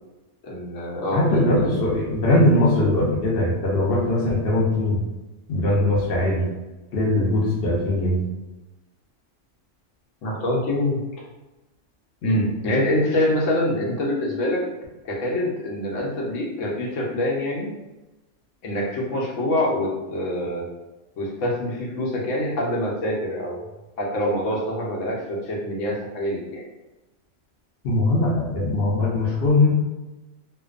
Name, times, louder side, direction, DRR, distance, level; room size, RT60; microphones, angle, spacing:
voice 1, 0.4-1.8 10.2-11.0 12.2-14.6 15.0-17.7 18.6-20.7 21.2-26.6, left 1 dB, 85° left, -2 dB, 1.0 m, -25 dB
voice 2, 1.1-5.0 5.5-6.5 6.9-8.2 27.8-29.7, left 1 dB, 60° left, -2 dB, 0.7 m, -20 dB
2.5 x 2.2 x 2.4 m, 1.1 s
omnidirectional pair, 1.3 m